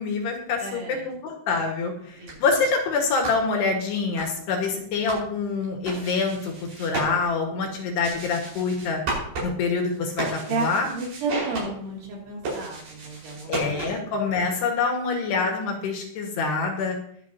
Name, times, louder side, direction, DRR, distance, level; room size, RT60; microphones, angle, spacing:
voice 1, 0.0-9.0 9.4-10.9 13.5-17.0, left 4 dB, 70° left, 2 dB, 3.7 m, -26 dB
voice 2, 0.6-1.0 2.2-2.4 10.5-14.0, right 3 dB, 65° right, -3 dB, 4.9 m, -32 dB
sound 1, 2.1-14.2, right 2 dB, 50° right, 6.7 m, -36 dB
21.5 x 7.9 x 2.9 m, 0.65 s
omnidirectional pair, 5.2 m